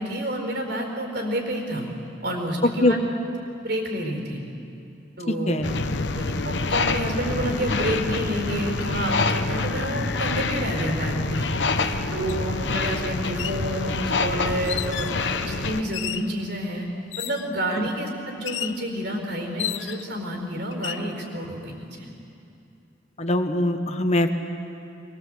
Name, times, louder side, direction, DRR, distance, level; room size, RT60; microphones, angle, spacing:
voice 1, 0.0-1.9 2.2-3.0 3.6-4.4 5.2-5.6 6.1-16.9 17.2-22.1, right 1 dB, 65° right, 2 dB, 4.5 m, -29 dB
sound 1, 5.6-15.8, left 3 dB, 70° left, 1.0 m, -26 dB
sound 2, 12.3-12.4 13.2-13.6 14.6-15.2 15.9-16.3 17.1-17.5 18.5-18.8 19.6-20.2 20.7-21.1, left 11 dB, 90° left, 0.7 m, -32 dB
voice 2, 23.2-24.4, left 1 dB, 35° left, 6 dB, 1.3 m, -22 dB
24.0 x 21.0 x 7.9 m, 2.7 s
head